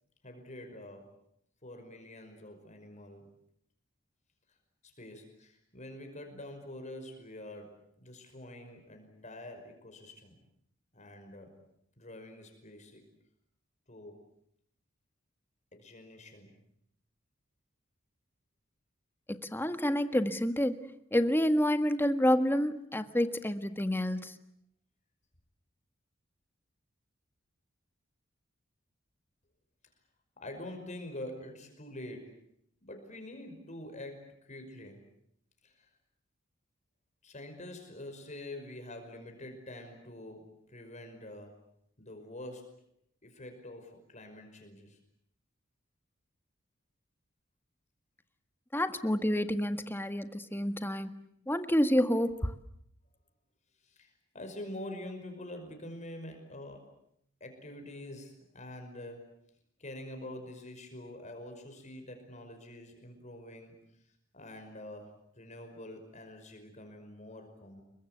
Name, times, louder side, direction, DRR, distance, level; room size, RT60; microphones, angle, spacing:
voice 1, 0.2-1.1 1.6-3.3 4.8-10.4 10.9-11.5 12.0-13.0 13.9-14.2 15.7-16.5 30.4-32.4 32.8-35.0 35.6-35.9 37.2-41.6 42.0-42.8 43.2-45.0 53.8-56.9 57.4-59.4 59.8-63.8 64.3-67.8, left 1 dB, 35° left, 5 dB, 5.5 m, -46 dB
voice 2, 19.3-20.8 21.1-24.4 48.7-51.1 51.5-52.5, equal, 10° left, 9 dB, 1.6 m, -28 dB
29.0 x 23.5 x 8.1 m, 0.71 s
head